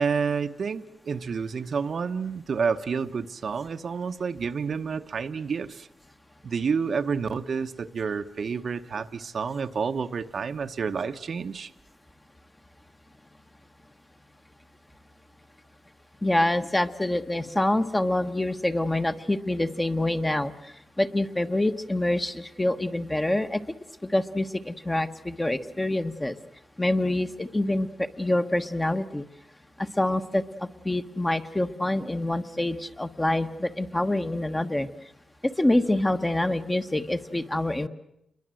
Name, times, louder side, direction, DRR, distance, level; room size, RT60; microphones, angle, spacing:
voice 1, 0.0-5.9 6.4-11.7, right 5 dB, 60° right, 8 dB, 1.0 m, -29 dB
voice 2, 16.2-23.6 24.0-26.4 26.8-29.2 30.0-34.9 35.4-37.9, left 1 dB, 15° left, 7 dB, 1.2 m, -26 dB
28.0 x 22.5 x 7.7 m, 0.81 s
cardioid pair, 105°, 0 cm